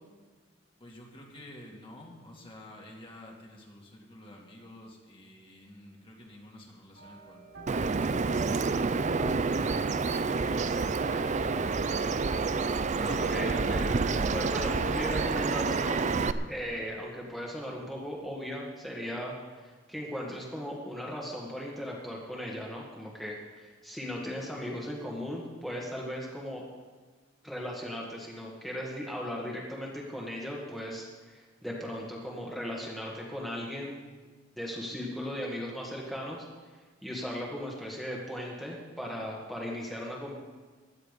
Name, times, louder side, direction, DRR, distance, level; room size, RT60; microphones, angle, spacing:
voice 1, 0.8-7.5 7.8-9.0 9.5-12.4, left 1 dB, 30° left, -1 dB, 2.3 m, -50 dB
Piano Playing, 6.9-16.5 16.8-17.2 17.5-17.6, right 3 dB, 70° right, 5.2 m, -49 dB
Bird vocalization bird call bird song, 7.7-16.3, right 4 dB, 40° right, 0.5 m, -28 dB
voice 2, 13.0-16.1 16.5-26.6 27.4-34.0 34.6-36.5 37.0-40.3, equal, ahead, -3 dB, 1.8 m, -37 dB
16.5 x 11.5 x 5.3 m, 1.3 s
head